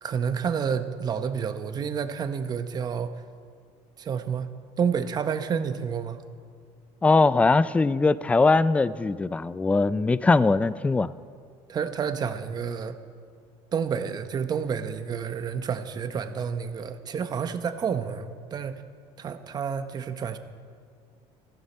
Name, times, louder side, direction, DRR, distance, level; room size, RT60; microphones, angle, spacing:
voice 1, 0.0-3.1 4.0-4.5 4.8-6.2 11.7-13.0 13.7-18.8 19.2-20.4, right 7 dB, 35° right, 10 dB, 1.0 m, -29 dB
voice 2, 7.0-11.1, left 3 dB, 10° left, 16 dB, 0.4 m, -21 dB
17.0 x 14.5 x 4.3 m, 2.1 s
cardioid pair, 125°, 11 cm